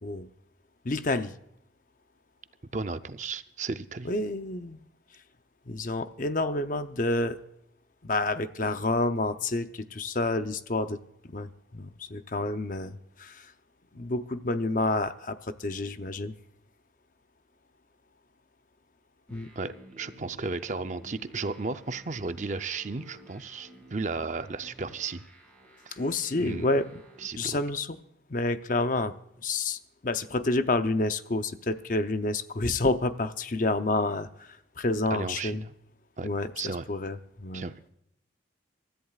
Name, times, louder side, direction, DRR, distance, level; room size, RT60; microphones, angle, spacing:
voice 1, 0.8-1.3 4.0-4.8 5.7-7.4 8.0-11.0 11.3-13.5 13.9-16.3 19.3-19.5 25.9-26.9 27.4-28.0 28.3-29.1 29.4-35.6 36.2-37.7, left 2 dB, 45° left, 9 dB, 0.7 m, -29 dB
voice 2, 2.7-4.1 19.6-25.2 26.3-26.7 27.2-27.6 35.1-35.6 36.2-36.3 36.6-36.9 37.5-37.7, right 3 dB, 40° right, 10 dB, 0.6 m, -34 dB
sound 1, 19.3-27.3, equal, 5° left, 6.0 m, -53 dB
24.0 x 14.0 x 2.4 m, 0.77 s
head